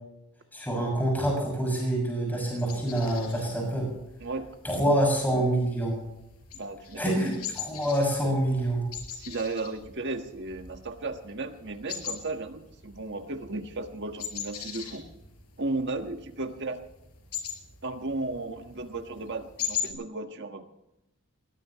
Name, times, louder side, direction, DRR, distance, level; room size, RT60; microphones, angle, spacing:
voice 1, 0.5-3.9 4.6-6.0 7.0-7.3 7.6-8.8, right 1 dB, 10° left, -1 dB, 6.7 m, -26 dB
sound 1, 2.5-19.9, left 8 dB, 85° left, 5.3 m, -41 dB
voice 2, 6.5-7.2 9.1-15.1 15.6-16.8 17.8-20.6, right 2 dB, 55° right, 6 dB, 1.6 m, -35 dB
21.0 x 18.0 x 3.2 m, 0.88 s
head